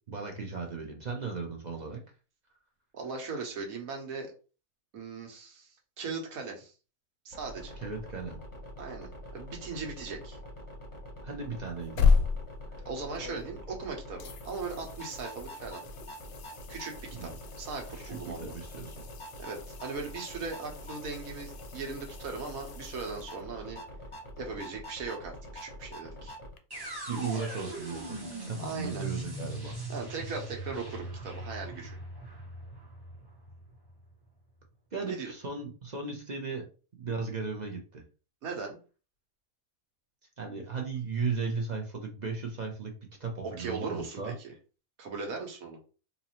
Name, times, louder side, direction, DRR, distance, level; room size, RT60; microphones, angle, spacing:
voice 1, 0.1-2.0 7.8-8.4 11.2-12.1 17.1-17.4 17.9-18.9 27.1-29.8 34.9-36.7 37.0-38.0 40.4-44.3, right 4 dB, 50° right, 2 dB, 0.5 m, -36 dB
voice 2, 2.9-4.3 4.9-6.7 7.2-7.8 8.8-10.4 12.8-15.8 16.7-16.9 17.2-17.3 17.6-18.5 19.4-23.8 24.4-26.3 28.6-29.0 29.9-32.0 35.0-35.3 38.4-38.8 43.4-44.5 45.0-45.8, right 4 dB, 75° right, 2 dB, 1.4 m, -38 dB
sound 1, 7.3-26.5, equal, 25° left, 0.8 m, -45 dB
sound 2, 11.7-13.8 14.2-23.8 26.6-26.7, left 5 dB, 65° left, 0.7 m, -34 dB
sound 3, 26.7-34.7, right 2 dB, 20° right, 1.0 m, -40 dB
4.1 x 2.6 x 2.8 m, 0.35 s
omnidirectional pair, 1.5 m